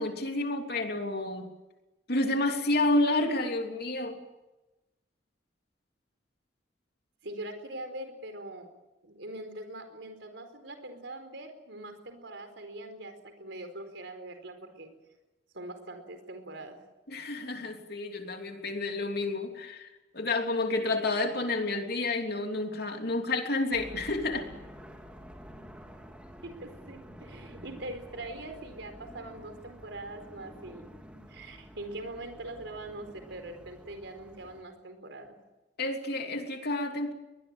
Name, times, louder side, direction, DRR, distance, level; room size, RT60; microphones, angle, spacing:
voice 1, 0.0-1.5 2.1-4.2 17.1-19.9 20.1-24.5 35.8-37.1, left 2 dB, 55° left, 4 dB, 3.2 m, -30 dB
voice 2, 7.2-8.7 9.0-14.9 15.5-16.8 26.4-30.9 31.3-35.4, right 1 dB, 75° right, 7 dB, 4.6 m, -42 dB
sound 1, 23.7-34.6, equal, 5° right, 3.0 m, -49 dB
23.0 x 20.5 x 9.0 m, 1.0 s
head